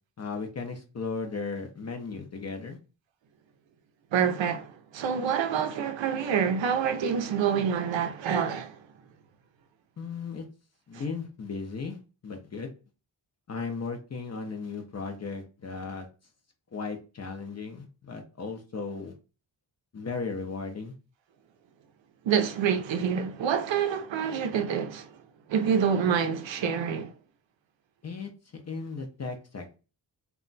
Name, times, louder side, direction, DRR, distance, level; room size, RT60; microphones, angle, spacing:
voice 1, 0.2-2.8 10.0-10.4 10.9-12.7 13.5-16.1 16.7-19.1 19.9-20.9 28.0-29.8, left 4 dB, 35° left, 0.5 m, -36 dB
voice 2, 4.1-8.8 22.2-25.2 25.5-27.1, right 7 dB, 80° right, 0.6 m, -27 dB
2.3 x 2.1 x 3.8 m
wide cardioid pair, 175°, 45 cm